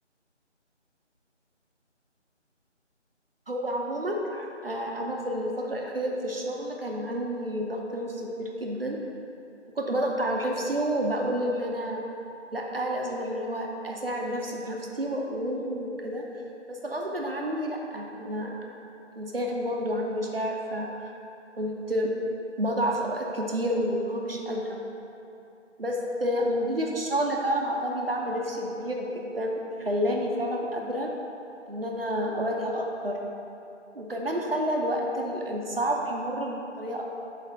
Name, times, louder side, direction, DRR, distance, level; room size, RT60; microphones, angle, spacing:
voice 1, 3.5-9.0 9.8-12.0 12.5-16.2 16.7-18.6 19.2-21.1 21.6-22.1 22.6-24.8 25.8-31.1 31.7-33.2 33.9-37.0, equal, 50° right, 0 dB, 0.8 m, -29 dB
5.0 x 4.2 x 5.6 m, 2.7 s
figure-of-eight pair, 175°, 36 cm